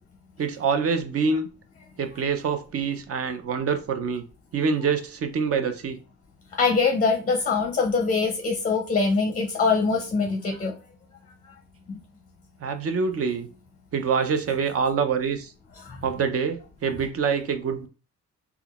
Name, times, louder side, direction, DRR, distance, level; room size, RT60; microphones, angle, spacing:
voice 1, 0.4-1.5 2.0-4.2 4.5-6.0 12.6-13.5 13.9-15.5 16.0-17.9, right 5 dB, 50° right, 0.6 m, -25 dB
voice 2, 6.6-10.7 11.9-12.0 15.8-16.0, left 4 dB, 25° left, 0.5 m, -23 dB
3.6 x 2.3 x 2.3 m
cardioid pair, 90°, 30 cm